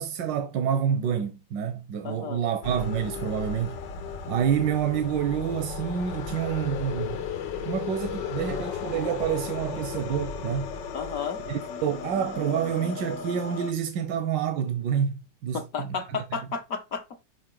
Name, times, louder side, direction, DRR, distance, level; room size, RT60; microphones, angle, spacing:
voice 1, 0.0-3.8 4.3-7.3 7.6-10.8 11.5-16.2, right 8 dB, 90° right, 1.5 m, -28 dB
voice 2, 2.0-2.4 10.9-11.4 15.5-17.2, left 6 dB, 60° left, 1.2 m, -33 dB
sound 1, 2.6-13.7, left 6 dB, 85° left, 1.5 m, -35 dB
5.6 x 5.4 x 3.7 m
omnidirectional pair, 1.9 m